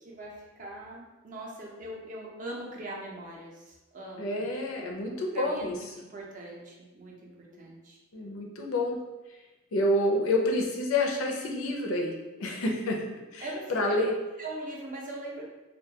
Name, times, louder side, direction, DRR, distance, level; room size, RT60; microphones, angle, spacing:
voice 1, 0.0-4.4 5.3-8.0 13.4-14.1 14.4-15.4, right 1 dB, 40° right, -2 dB, 0.4 m, -41 dB
voice 2, 4.2-5.8 8.1-9.0 9.3-9.4 9.7-13.0 13.3-14.1, left 1 dB, 80° left, 0 dB, 0.4 m, -28 dB
2.2 x 2.2 x 2.7 m, 1.1 s
head